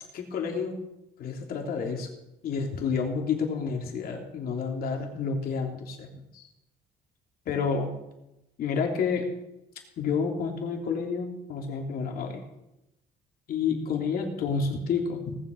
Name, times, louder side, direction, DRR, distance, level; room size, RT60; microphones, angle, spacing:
voice 1, 0.1-0.8 1.2-2.1 2.4-6.5 7.5-8.0 8.6-9.3 10.0-12.4 13.5-15.4, left 5 dB, 60° left, 2 dB, 3.1 m, -29 dB
18.5 x 7.7 x 6.4 m, 0.91 s
cardioid pair, 110°, 17 cm